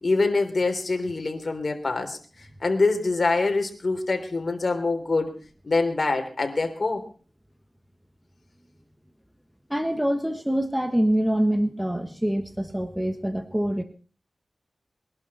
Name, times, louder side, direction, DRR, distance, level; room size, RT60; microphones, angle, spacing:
voice 1, 0.0-2.2 2.6-5.4 5.6-7.0, left 3 dB, 50° left, 4 dB, 3.5 m, -24 dB
voice 2, 9.7-13.8, equal, 5° right, 7 dB, 1.4 m, -25 dB
22.0 x 11.5 x 4.3 m, 0.39 s
wide cardioid pair, 80°, 0 cm